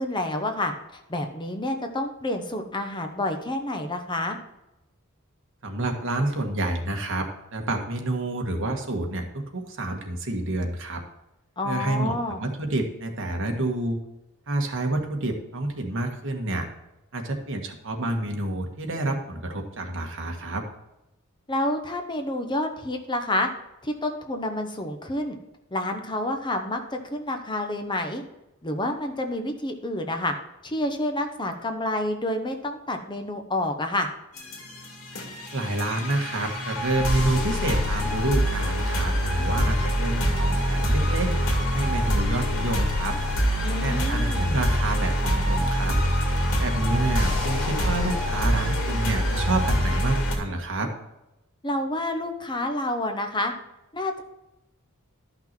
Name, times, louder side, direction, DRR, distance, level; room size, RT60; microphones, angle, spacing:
voice 1, 0.0-4.4 11.6-12.4 21.5-23.5 23.8-25.4 25.7-28.2 28.6-30.3 30.6-34.1 43.6-44.6 51.6-53.5 53.9-54.2, left 1 dB, 20° left, 5 dB, 0.9 m, -29 dB
voice 2, 5.6-11.0 11.6-14.0 14.5-16.7 17.1-20.6 35.5-41.3 41.7-43.2 43.8-46.0 46.6-50.9, right 2 dB, 65° right, 3 dB, 1.6 m, -28 dB
sound 1, 34.4-50.3, equal, 65° left, 2.6 m, -25 dB
12.0 x 5.9 x 4.5 m, 0.94 s
head